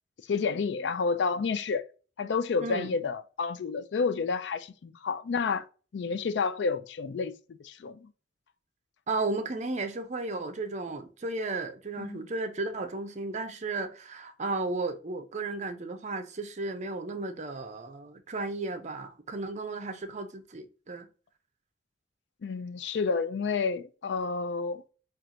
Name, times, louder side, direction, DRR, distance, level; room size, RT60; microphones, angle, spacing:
voice 1, 0.3-1.8 2.2-5.7 5.9-8.1 12.0-12.3 22.4-24.8, left 5 dB, 70° left, 0.4 m, -30 dB
voice 2, 2.6-2.9 9.1-21.1, right 3 dB, 40° right, 0.6 m, -34 dB
4.3 x 2.4 x 3.8 m
head